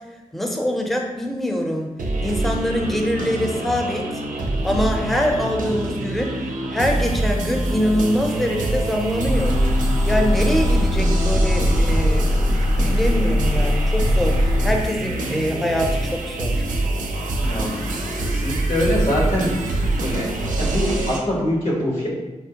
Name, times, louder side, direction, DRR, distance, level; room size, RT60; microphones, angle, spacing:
voice 1, 0.3-1.9 2.2-4.2 4.6-6.4 6.7-9.5 10.0-12.3 12.8-16.7, equal, ahead, 2 dB, 0.5 m, -24 dB
sound 1, 2.0-21.2, right 2 dB, 85° right, 0.4 m, -24 dB
sound 2, 9.3-14.8, left 1 dB, 70° left, 0.8 m, -21 dB
voice 2, 17.4-17.8 18.1-19.5 20.0-22.1, left 1 dB, 90° left, -4 dB, 1.0 m, -24 dB
4.2 x 2.0 x 2.8 m, 1.1 s
cardioid pair, 50°, 13 cm